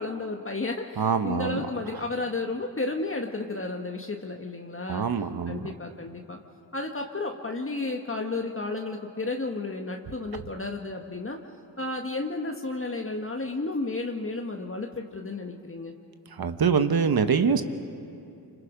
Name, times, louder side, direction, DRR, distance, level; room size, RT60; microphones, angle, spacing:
voice 1, 0.0-5.1 5.5-6.4 6.7-11.4 11.8-15.9, left 3 dB, 25° left, 2 dB, 1.6 m, -32 dB
voice 2, 1.0-1.6 4.9-5.6 16.4-17.6, right 6 dB, 50° right, 9 dB, 1.4 m, -24 dB
27.0 x 25.5 x 5.2 m, 2.7 s
supercardioid pair, 50°, 46 cm